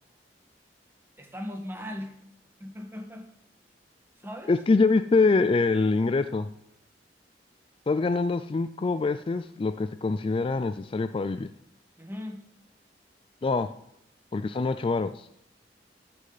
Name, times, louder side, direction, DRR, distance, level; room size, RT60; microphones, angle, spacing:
voice 1, 1.2-2.2 2.6-3.3 4.2-4.6 12.0-12.4, left 1 dB, 15° right, 4 dB, 1.5 m, -38 dB
voice 2, 4.5-6.5 7.9-11.5 13.4-13.7 14.3-15.3, left 3 dB, 30° left, 11 dB, 0.3 m, -24 dB
14.0 x 8.3 x 4.0 m, 0.75 s
head